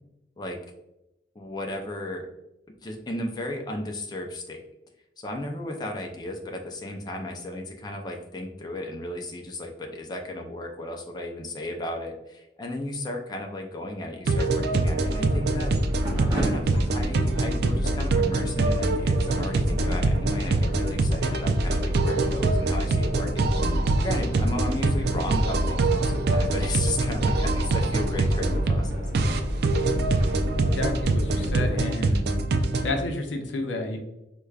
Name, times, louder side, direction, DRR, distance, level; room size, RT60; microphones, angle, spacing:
voice 1, 1.4-2.3 2.8-4.6 5.2-15.7 16.3-23.8 24.0-29.1, left 1 dB, 25° left, 1 dB, 0.4 m, -34 dB
sound 1, 14.3-33.0, right 2 dB, 60° right, 0.3 m, -24 dB
sound 2, 15.1-31.8, equal, 25° right, 0.9 m, -32 dB
voice 2, 30.7-32.2 32.8-34.0, left 2 dB, 90° left, 4 dB, 0.6 m, -30 dB
4.6 x 2.2 x 2.3 m, 0.91 s
head